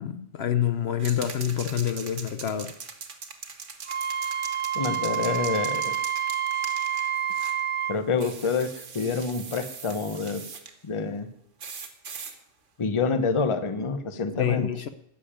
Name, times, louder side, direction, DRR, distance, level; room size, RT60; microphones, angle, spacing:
voice 1, 0.0-2.7 14.3-14.9, left 9 dB, 65° left, 0.9 m, -27 dB
sound 1, 1.0-7.6 8.2-10.7 11.6-12.3, right 5 dB, 80° right, 1.6 m, -41 dB
Wind instrument woodwind instrument, 3.9-8.0, right 9 dB, 50° right, 0.7 m, -28 dB
voice 2, 4.7-6.0 7.9-10.4 10.8-11.3 12.8-14.7, left 4 dB, 30° left, 0.8 m, -27 dB
11.5 x 7.1 x 8.8 m
omnidirectional pair, 1.2 m